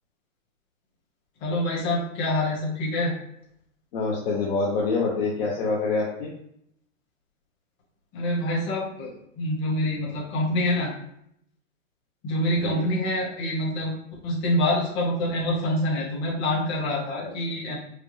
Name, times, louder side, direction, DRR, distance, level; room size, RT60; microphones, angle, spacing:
voice 1, 1.4-3.1 8.1-10.9 12.2-13.9 14.2-17.8, left 1 dB, 30° left, -5 dB, 1.5 m, -26 dB
voice 2, 3.9-6.3 12.5-12.9 17.2-17.5, left 3 dB, 45° left, -4 dB, 1.0 m, -26 dB
4.9 x 2.4 x 3.2 m, 0.72 s
hypercardioid pair, 150°, 41 cm